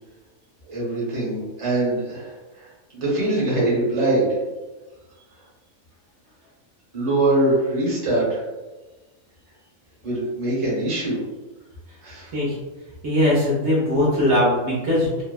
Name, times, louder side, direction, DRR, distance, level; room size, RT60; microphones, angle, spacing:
voice 1, 0.7-4.4 6.9-8.4 10.0-11.2 12.0-12.3, right 2 dB, 30° right, -7 dB, 0.8 m, -23 dB
voice 2, 13.0-15.2, left 1 dB, 65° right, -6 dB, 1.0 m, -20 dB
2.7 x 2.2 x 2.2 m, 1.2 s
omnidirectional pair, 1.4 m